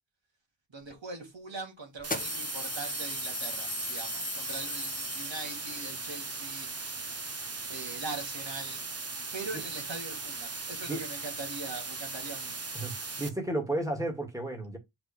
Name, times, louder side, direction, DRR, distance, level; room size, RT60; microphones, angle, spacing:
voice 1, 0.7-7.1 7.7-8.8 9.3-12.5, right 3 dB, 65° right, 2.6 m, -41 dB
sound 1, 0.9-1.0 2.0-5.8, left 2 dB, 15° left, 1.0 m, -37 dB
sound 2, 2.0-13.3, right 3 dB, 30° right, 1.1 m, -38 dB
voice 2, 12.7-14.8, right 1 dB, 5° right, 2.2 m, -33 dB
6.0 x 4.8 x 3.5 m
wide cardioid pair, 80°, 48 cm